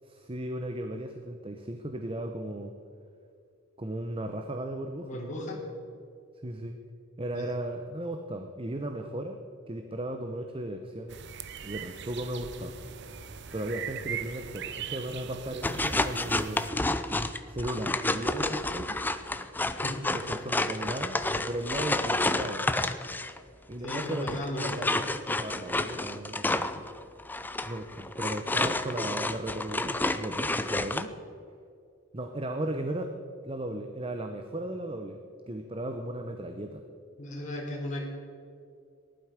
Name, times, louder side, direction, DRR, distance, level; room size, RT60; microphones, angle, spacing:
voice 1, 0.0-2.7 3.8-5.1 6.4-6.7 7.2-9.4 9.7-11.2 11.6-12.8 13.5-16.6 17.5-19.0 20.1-22.7 23.7-26.8 27.6-31.1 32.1-33.2 33.4-35.2 35.5-36.8, right 1 dB, 25° right, 6 dB, 0.8 m, -36 dB
voice 2, 5.0-5.6 7.3-7.5 19.8-20.0 23.8-25.0 37.2-38.0, left 1 dB, 40° left, -4 dB, 3.6 m, -36 dB
sound 1, 11.1-16.7, right 8 dB, 60° right, 0.8 m, -40 dB
sound 2, 15.6-23.4 23.8-31.1, left 2 dB, 10° left, 0.5 m, -30 dB
18.5 x 12.0 x 5.1 m, 2.4 s
head